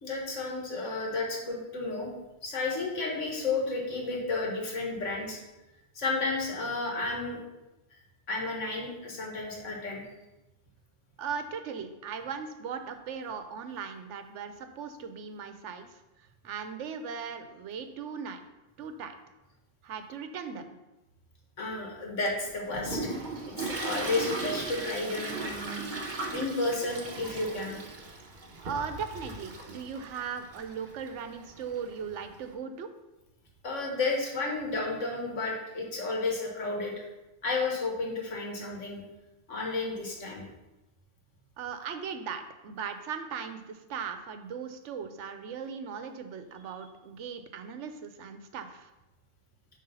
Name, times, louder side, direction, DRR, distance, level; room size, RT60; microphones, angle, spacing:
voice 1, 0.0-2.1 2.4-5.4 6.0-7.4 8.3-10.0 21.6-23.1 23.5-25.9 26.3-27.8 33.6-37.0 37.4-39.0 39.5-40.4, left 3 dB, 90° left, -1 dB, 1.8 m, -32 dB
voice 2, 11.2-15.9 16.4-18.4 18.8-19.1 19.8-20.7 28.6-32.9 41.6-48.9, right 6 dB, 80° right, 8 dB, 1.0 m, -38 dB
Toilet flush, 22.3-32.5, right 3 dB, 45° right, 1.0 m, -38 dB
7.7 x 3.5 x 5.5 m, 1.0 s
omnidirectional pair, 1.2 m